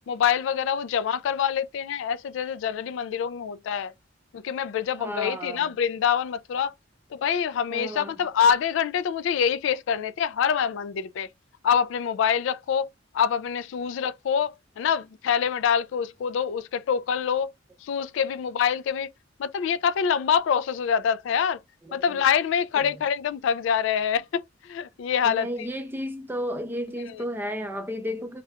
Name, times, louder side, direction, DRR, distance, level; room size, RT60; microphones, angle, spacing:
voice 1, 0.1-3.9 4.3-6.7 7.1-11.3 11.6-12.9 13.1-17.5 17.8-19.1 19.4-21.6 21.9-25.5, left 7 dB, 70° left, 0.3 m, -25 dB
voice 2, 5.0-5.8 7.7-8.1 21.8-22.2 22.8-22.9 25.2-28.4, equal, 10° right, 0.5 m, -33 dB
3.3 x 2.3 x 2.7 m
head